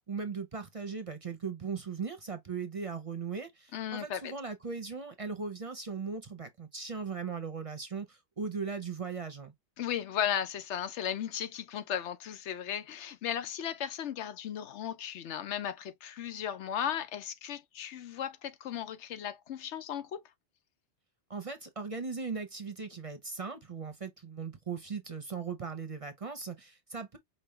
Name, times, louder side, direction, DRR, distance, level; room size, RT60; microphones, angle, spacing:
voice 1, 0.0-9.5 21.3-27.2, right 5 dB, 35° right, 0.6 m, -38 dB
voice 2, 3.7-4.3 9.8-20.2, left 9 dB, 85° left, 1.0 m, -36 dB
5.4 x 2.1 x 3.2 m
omnidirectional pair, 1.2 m